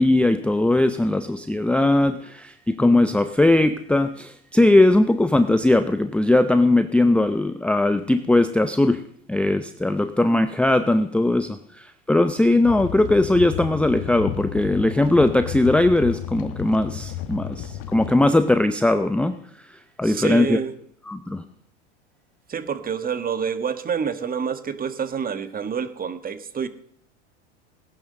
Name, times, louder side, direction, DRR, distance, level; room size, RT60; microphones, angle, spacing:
voice 1, 0.0-9.0 9.3-19.3 20.0-20.6 21.1-21.4, left 2 dB, 5° left, 10 dB, 0.6 m, -19 dB
sound 1, 12.6-18.1, left 11 dB, 60° left, 2.0 m, -33 dB
voice 2, 20.0-20.7 22.5-26.7, right 7 dB, 25° right, 12 dB, 1.4 m, -27 dB
17.5 x 10.5 x 6.5 m, 0.62 s
supercardioid pair, 105°, 36 cm